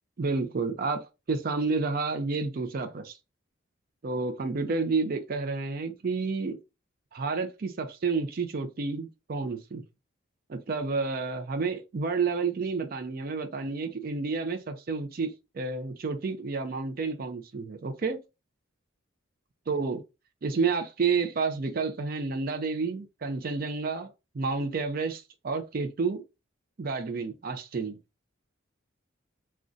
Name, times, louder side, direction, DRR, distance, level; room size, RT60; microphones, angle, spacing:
voice 1, 0.2-3.2 4.0-6.6 7.1-9.8 10.5-18.2 19.7-20.0 20.4-26.2 26.8-28.0, right 4 dB, 45° right, 0.4 m, -30 dB
2.4 x 2.1 x 3.7 m
head